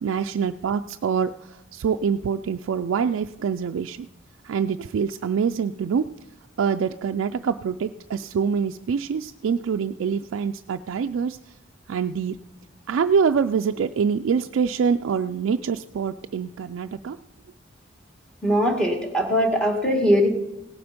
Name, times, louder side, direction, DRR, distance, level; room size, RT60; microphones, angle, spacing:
voice 1, 0.0-4.1 4.4-6.1 6.6-11.4 11.9-12.4 12.9-17.2, right 6 dB, 80° right, 7 dB, 0.3 m, -25 dB
voice 2, 18.4-20.3, equal, 5° left, 2 dB, 1.9 m, -21 dB
17.5 x 7.8 x 5.2 m, 0.94 s
head